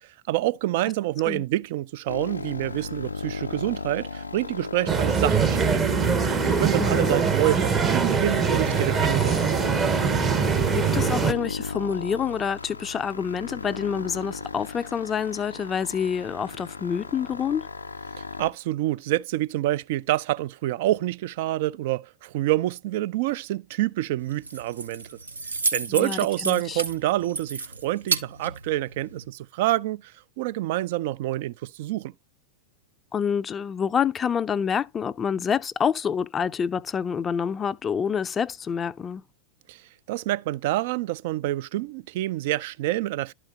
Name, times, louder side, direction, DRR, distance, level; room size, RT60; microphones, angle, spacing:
voice 1, 0.3-6.0 6.2-9.8 18.4-25.2 25.7-32.1 39.7-39.8 40.1-43.3, right 15 dB, 50° right, 0.3 m, -27 dB
sound 1, 2.1-18.5, left 3 dB, 80° left, 0.4 m, -34 dB
sound 2, 4.9-11.3, right 6 dB, 20° right, 0.7 m, -23 dB
voice 2, 6.8-7.2 10.7-17.7 25.9-26.8 33.1-39.2, left 7 dB, 20° left, 0.4 m, -27 dB
Keys jangling, 24.2-29.3, right 4 dB, 75° right, 0.7 m, -32 dB
12.0 x 4.3 x 2.8 m
figure-of-eight pair, 90°, 0 cm